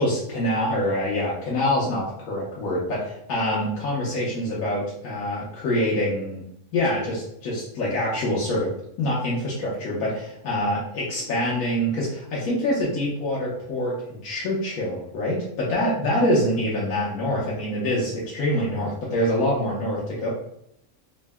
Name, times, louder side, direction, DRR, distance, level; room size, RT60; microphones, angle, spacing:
voice 1, 0.0-6.4 6.7-8.7 9.0-20.3, left 1 dB, 85° left, -6 dB, 1.4 m, -25 dB
3.9 x 2.1 x 3.4 m, 0.75 s
omnidirectional pair, 1.5 m